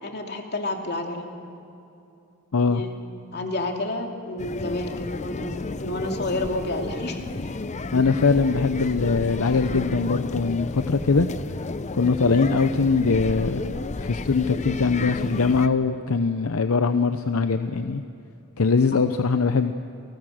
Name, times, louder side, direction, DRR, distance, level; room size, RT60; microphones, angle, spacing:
voice 1, 0.0-1.3 2.7-2.9 3.3-7.2 18.9-19.2, left 2 dB, 50° left, 3 dB, 2.5 m, -30 dB
sound 1, 4.4-15.7, left 3 dB, 35° left, 0.7 m, -32 dB
voice 2, 7.9-11.3 11.9-13.7 14.0-18.0 18.6-19.7, left 4 dB, 75° left, 9 dB, 0.7 m, -22 dB
29.0 x 19.5 x 6.5 m, 2.7 s
head